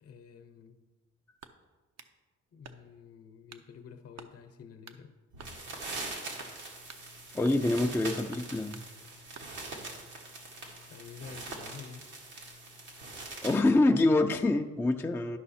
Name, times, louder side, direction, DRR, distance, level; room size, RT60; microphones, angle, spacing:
voice 1, 0.0-0.8 2.5-5.1 10.9-12.1, left 6 dB, 50° left, 9 dB, 0.8 m, -49 dB
sound 1, 1.4-2.2 2.6-3.1 3.5-3.7 4.2-4.4 4.9-5.0 5.4-6.1 6.4-6.6 6.9-7.1 7.4-8.0 8.3-8.9 9.3-10.0, right 6 dB, 60° right, 0.7 m, -51 dB
sound 2, 5.3-13.6, right 2 dB, 90° right, 1.9 m, -43 dB
voice 2, 7.3-8.8 13.4-15.4, left 2 dB, 10° left, 3 dB, 0.4 m, -26 dB
11.5 x 5.4 x 4.2 m, 1.3 s
cardioid pair, 90°, 30 cm